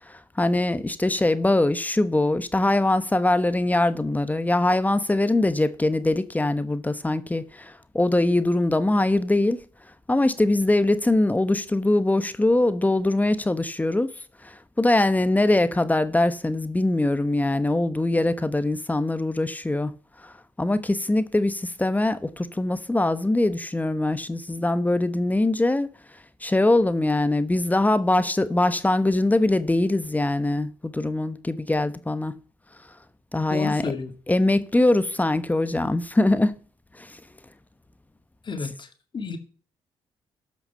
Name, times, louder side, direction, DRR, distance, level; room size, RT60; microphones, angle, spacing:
voice 1, 0.1-9.6 10.1-14.1 14.4-19.9 20.2-20.3 20.6-25.9 26.4-32.3 33.3-33.8 34.3-36.6 37.0-37.2, left 2 dB, 15° left, 1.1 m, -22 dB
voice 2, 33.5-34.1 38.5-38.9 39.1-39.4, left 5 dB, 45° left, 2.1 m, -31 dB
14.0 x 5.9 x 5.6 m
supercardioid pair, 60°, 11 cm